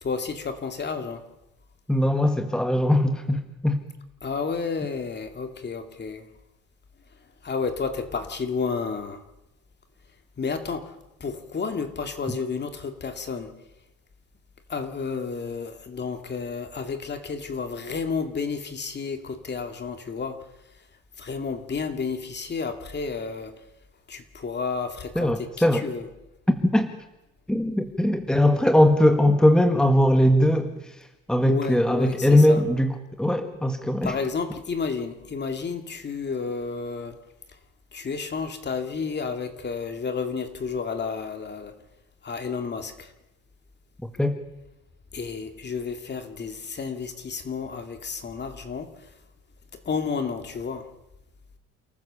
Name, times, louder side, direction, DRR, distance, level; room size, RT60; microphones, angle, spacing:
voice 1, 0.0-1.2 4.2-6.3 7.4-9.2 10.4-10.9 11.2-13.5 14.7-20.4 21.2-23.5 24.1-26.1 31.4-32.6 34.0-37.2 37.9-41.7 42.2-43.1 45.1-48.9 49.9-50.9, left 5 dB, 35° left, 6 dB, 2.5 m, -31 dB
voice 2, 1.9-3.8 25.2-25.8 26.5-26.9 27.5-30.7 31.3-34.2 44.2-44.3, left 1 dB, ahead, 6 dB, 1.8 m, -20 dB
28.5 x 14.5 x 7.0 m, 0.94 s
cardioid pair, 110°, 31 cm